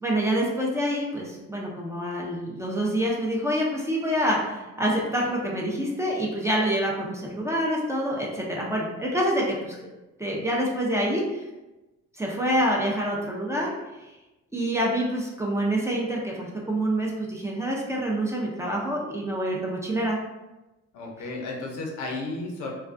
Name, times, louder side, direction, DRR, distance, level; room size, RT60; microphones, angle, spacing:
voice 1, 0.0-9.8 10.2-11.4 12.1-13.7 14.5-20.2, equal, 10° right, -3 dB, 0.4 m, -26 dB
voice 2, 20.9-22.7, left 2 dB, 80° left, 0 dB, 0.6 m, -33 dB
2.3 x 2.2 x 2.4 m, 1.1 s
cardioid pair, 90°, 30 cm